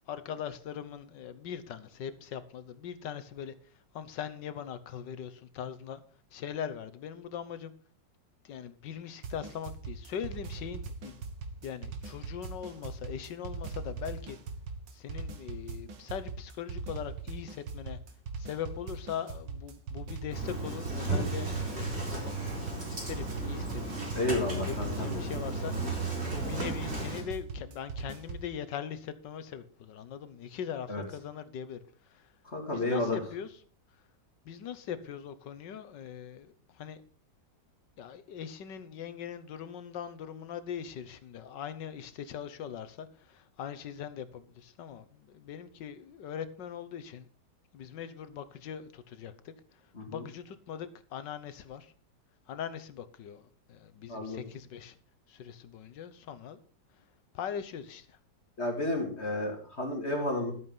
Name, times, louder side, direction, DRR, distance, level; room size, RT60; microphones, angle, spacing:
voice 1, 0.0-3.5 3.9-6.0 6.3-7.7 8.4-11.2 11.6-14.4 14.9-18.0 18.4-22.3 22.9-25.7 26.3-31.8 32.1-32.2 32.7-33.5 34.4-37.0 38.0-47.3 47.7-49.5 50.1-51.9 52.5-54.9 55.3-56.6 57.3-58.2, left 8 dB, 80° left, 1.7 m, -41 dB
sound 1, 9.2-28.5, right 4 dB, 85° right, 2.1 m, -40 dB
Engine starting, 20.3-27.2, right 2 dB, 35° right, 4.4 m, -34 dB
voice 2, 24.1-25.2 30.9-31.0 32.4-33.2 49.9-50.2 54.1-54.4 58.6-60.5, left 2 dB, 35° left, 2.7 m, -32 dB
12.5 x 8.5 x 5.4 m
omnidirectional pair, 1.9 m